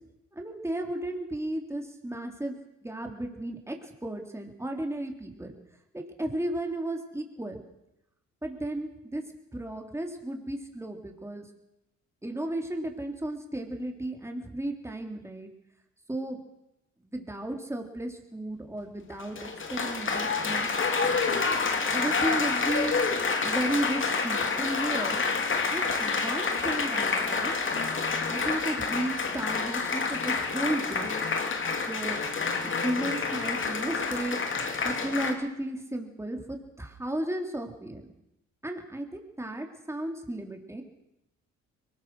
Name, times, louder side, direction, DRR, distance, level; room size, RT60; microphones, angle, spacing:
voice 1, 0.3-2.5 2.8-5.5 5.9-7.6 8.4-9.2 9.5-11.4 12.2-15.5 16.1-16.4 17.1-20.7 21.9-25.2 25.7-27.5 28.3-31.1 31.9-32.2 32.6-34.4 34.8-38.1 38.6-40.8, right 1 dB, 10° right, 3 dB, 3.9 m, -34 dB
Applause, 19.1-35.3, left 4 dB, 40° left, 2.7 m, -28 dB
22.5 x 20.5 x 6.5 m, 0.87 s
cardioid pair, 90°, 30 cm